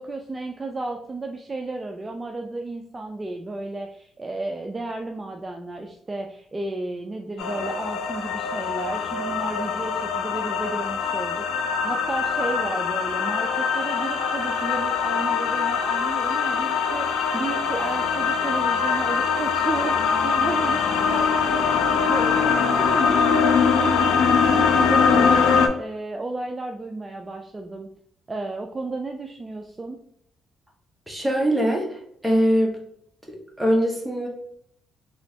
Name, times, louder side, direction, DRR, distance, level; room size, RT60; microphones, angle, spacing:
voice 1, 0.0-27.9 28.3-30.0, right 2 dB, 25° right, 3 dB, 0.3 m, -33 dB
sound 1, 7.4-25.7, left 6 dB, 85° left, 0.4 m, -22 dB
voice 2, 31.1-32.8 33.3-34.3, equal, 5° right, 0 dB, 0.9 m, -23 dB
3.1 x 3.0 x 2.7 m, 0.69 s
cardioid pair, 90°, 0 cm